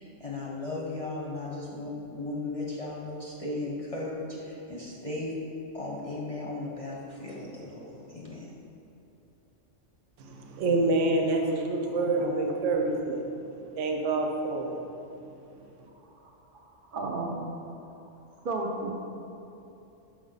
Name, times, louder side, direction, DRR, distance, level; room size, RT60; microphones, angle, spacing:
voice 1, 0.0-5.3 5.7-8.5, left 2 dB, 35° left, -5 dB, 0.6 m, -36 dB
voice 2, 10.2-13.2 13.8-14.7, right 2 dB, 75° right, 2 dB, 1.0 m, -27 dB
voice 3, 11.9-12.4 16.9-17.6 18.4-18.9, right 2 dB, 60° right, 1 dB, 0.6 m, -33 dB
6.1 x 4.9 x 3.9 m, 2.9 s
omnidirectional pair, 1.3 m